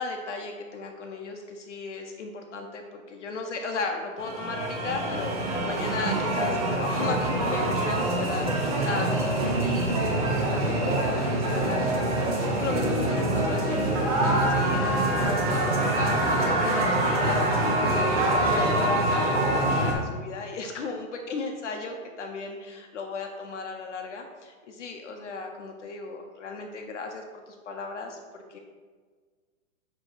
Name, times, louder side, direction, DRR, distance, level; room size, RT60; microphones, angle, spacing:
voice 1, 0.0-12.2 12.6-28.6, left 3 dB, 55° left, 3 dB, 0.8 m, -36 dB
sound 1, 4.2-19.9, right 1 dB, 25° right, 0.7 m, -25 dB
7.8 x 3.1 x 4.5 m, 1.5 s
hypercardioid pair, 170°, 42 cm